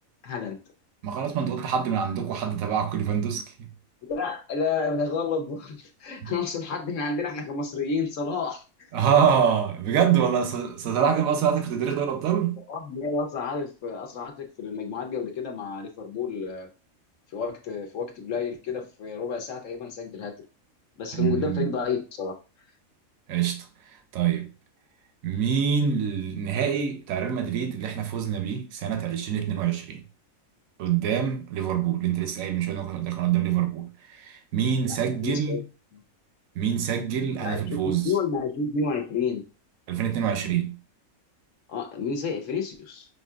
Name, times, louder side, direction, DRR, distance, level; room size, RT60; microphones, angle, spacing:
voice 1, 0.2-0.6 4.1-8.9 12.7-16.7 17.3-20.4 21.0-22.4 34.9-35.6 35.9-36.0 37.4-39.4 41.7-43.1, left 5 dB, 70° left, 1.1 m, -30 dB
voice 2, 1.0-3.7 6.2-6.3 8.9-12.6 21.2-21.7 23.3-23.7 24.1-24.5 25.2-30.0 30.8-35.6 36.6-38.1 39.9-40.8, right 8 dB, 80° right, 1.1 m, -25 dB
5.7 x 2.7 x 2.3 m
omnidirectional pair, 1.4 m